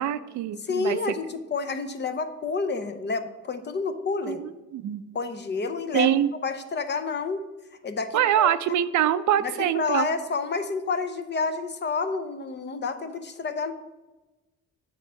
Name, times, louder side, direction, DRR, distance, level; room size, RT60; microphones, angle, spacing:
voice 1, 0.0-1.0 4.3-5.0 5.9-6.3 8.1-10.1, right 11 dB, 70° right, 13 dB, 0.5 m, -24 dB
voice 2, 0.6-4.4 5.1-6.1 6.4-7.4 7.8-8.5 9.4-13.7, left 4 dB, 35° left, 9 dB, 0.7 m, -29 dB
8.2 x 3.6 x 5.6 m, 1.1 s
cardioid pair, 90°, 30 cm